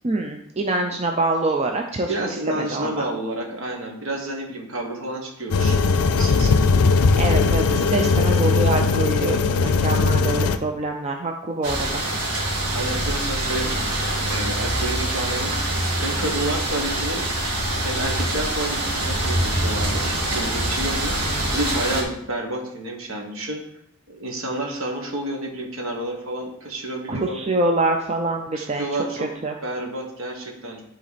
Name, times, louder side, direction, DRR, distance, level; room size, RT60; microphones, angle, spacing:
voice 1, 0.0-2.1 2.5-3.0 7.2-12.0 21.2-21.5 27.1-28.8 29.4-29.6, right 2 dB, 30° right, 2 dB, 0.5 m, -25 dB
voice 2, 2.1-5.8 6.2-6.6 8.0-8.2 12.7-17.3 17.8-23.6 24.1-27.4 28.5-29.3 29.6-30.8, right 1 dB, 60° right, 1 dB, 1.5 m, -30 dB
sound 1, 5.5-10.6, left 4 dB, 80° left, 0.5 m, -19 dB
sound 2, 11.6-22.0, right 1 dB, 85° right, 2.1 m, -25 dB
10.5 x 4.1 x 4.2 m, 0.76 s
head